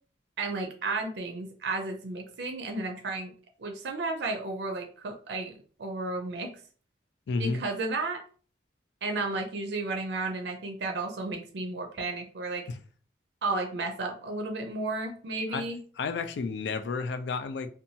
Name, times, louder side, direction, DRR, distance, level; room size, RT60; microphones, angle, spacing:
voice 1, 0.4-3.3 3.6-6.6 7.4-8.2 9.0-12.7 13.4-15.8, right 3 dB, 70° right, 0.4 m, -33 dB
voice 2, 7.3-7.6 12.7-12.8 15.5-15.6 16.0-17.7, left 4 dB, 70° left, 0.3 m, -31 dB
2.7 x 2.3 x 2.7 m
head